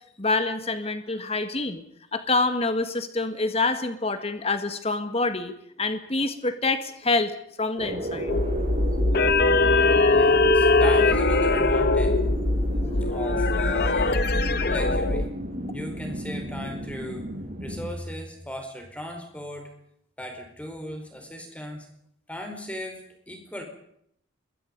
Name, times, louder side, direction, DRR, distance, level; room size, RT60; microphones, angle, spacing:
voice 1, 0.2-1.8 2.1-5.5 5.8-7.3 7.6-8.3, left 3 dB, 30° left, 9 dB, 1.8 m, -26 dB
sound 1, 7.8-17.9, equal, 45° right, 6.8 m, -33 dB
sound 2, 8.3-15.3, left 2 dB, 50° left, 1.2 m, -21 dB
voice 2, 10.0-12.2 13.0-14.3 14.7-15.3 15.7-17.3 17.6-19.7 20.2-21.9 22.3-23.6, equal, 5° left, 4 dB, 4.7 m, -37 dB
25.5 x 22.0 x 5.4 m, 0.71 s
head